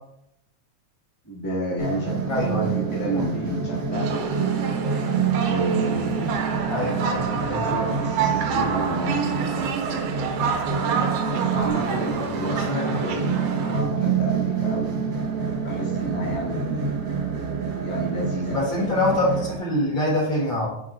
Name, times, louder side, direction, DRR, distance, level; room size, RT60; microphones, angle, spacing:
voice 1, 1.2-4.6 5.5-6.4 7.4-10.1 11.2-14.9 15.6-17.0 17.8-18.6, right 1 dB, 5° left, -7 dB, 1.2 m, -30 dB
sound 1, 1.8-19.6, right 6 dB, 50° right, 1.3 m, -27 dB
voice 2, 2.3-2.7 3.1-3.2 6.7-7.3 12.6-13.0 18.5-20.7, left 1 dB, 45° left, -6 dB, 2.1 m, -24 dB
sound 2, 3.9-13.8, right 6 dB, 75° right, 1.4 m, -29 dB
9.1 x 5.0 x 2.6 m, 0.79 s
omnidirectional pair, 3.5 m